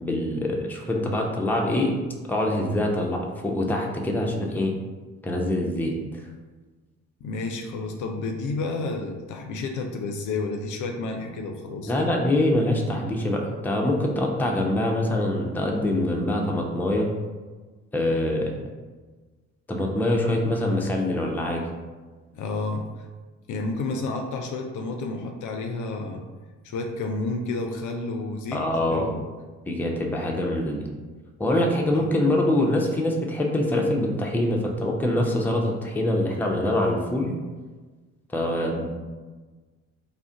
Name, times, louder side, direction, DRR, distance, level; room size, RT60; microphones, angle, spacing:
voice 1, 0.0-2.0 2.3-4.7 5.2-5.9 11.9-17.1 17.9-18.5 19.7-21.6 28.5-29.1 29.7-30.9 31.4-37.3 38.3-38.9, left 1 dB, 5° left, 0 dB, 0.5 m, -24 dB
voice 2, 7.2-12.1 22.3-23.1 23.5-26.2 26.6-29.2 31.9-32.1, left 3 dB, 55° left, 3 dB, 0.5 m, -31 dB
2.4 x 2.2 x 3.7 m, 1.3 s
hypercardioid pair, 55°, 37 cm